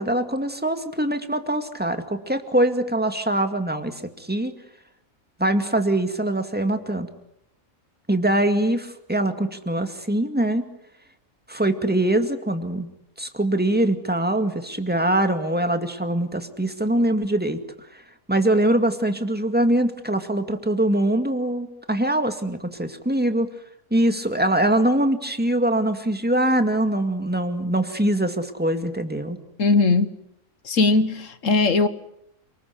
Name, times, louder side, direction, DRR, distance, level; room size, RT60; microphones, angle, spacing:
voice 1, 0.0-4.5 5.4-7.1 8.1-10.7 11.5-12.9 13.2-17.6 17.9-18.0 18.3-23.5 23.9-29.4, right 1 dB, 5° right, 2.1 m, -23 dB
voice 2, 29.6-30.1 30.6-31.9, left 3 dB, 65° left, 1.7 m, -19 dB
29.0 x 20.5 x 8.2 m
omnidirectional pair, 1.5 m